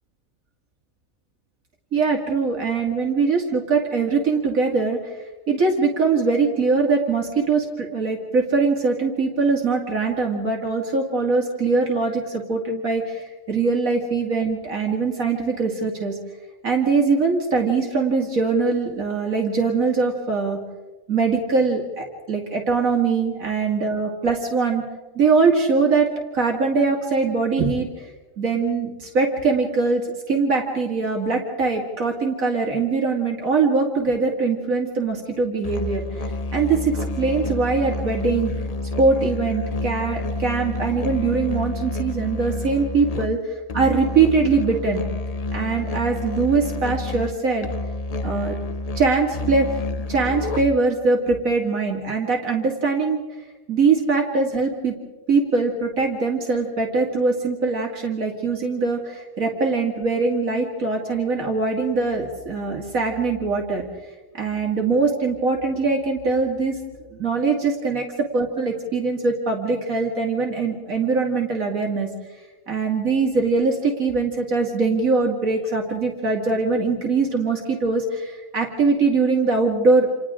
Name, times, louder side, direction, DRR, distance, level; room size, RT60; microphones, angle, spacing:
voice 1, 1.9-5.1 5.5-16.2 16.6-20.6 21.1-24.8 25.2-26.1 26.3-28.1 28.4-38.5 39.0-45.0 45.5-47.7 48.2-48.6 49.0-49.7 50.1-53.2 53.7-54.9 55.3-63.9 64.3-66.8 67.1-68.0 68.3-72.1 72.7-80.1, right 4 dB, 75° right, 0 dB, 2.7 m, -22 dB
Musical instrument, 35.6-51.0, left 2 dB, 35° left, 0.6 m, -29 dB
29.5 x 28.0 x 3.7 m, 1.2 s
omnidirectional pair, 1.4 m